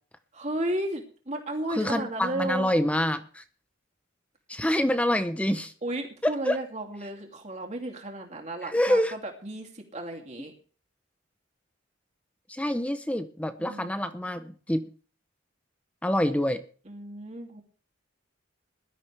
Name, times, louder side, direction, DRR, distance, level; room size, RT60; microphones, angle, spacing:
voice 1, 0.3-2.7 5.8-10.5 13.6-14.1 16.9-17.6, right 1 dB, 35° right, 2 dB, 2.9 m, -34 dB
voice 2, 1.7-3.4 4.5-5.7 6.2-6.6 8.6-9.2 12.5-14.9 16.0-16.6, left 1 dB, 5° left, 9 dB, 0.7 m, -26 dB
20.0 x 12.5 x 3.4 m, 0.41 s
head